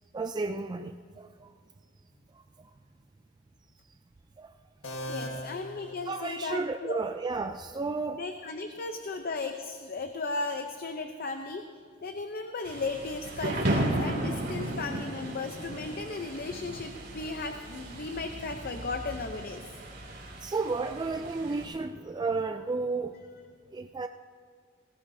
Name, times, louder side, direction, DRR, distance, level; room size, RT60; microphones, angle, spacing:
voice 1, 0.1-1.5 2.3-2.4 4.4-4.5 5.3-5.5 6.1-8.2 20.4-23.2 23.7-24.1, right 3 dB, 20° right, 7 dB, 0.3 m, -32 dB
sound 1, 4.8-6.7, equal, 75° left, 1.5 m, -40 dB
voice 2, 5.1-7.0 8.2-11.7 12.0-19.6, left 3 dB, 50° left, 6 dB, 0.6 m, -36 dB
Thunder / Rain, 12.6-21.7, right 1 dB, 55° right, 2.6 m, -35 dB
18.0 x 18.0 x 2.7 m, 2.1 s
head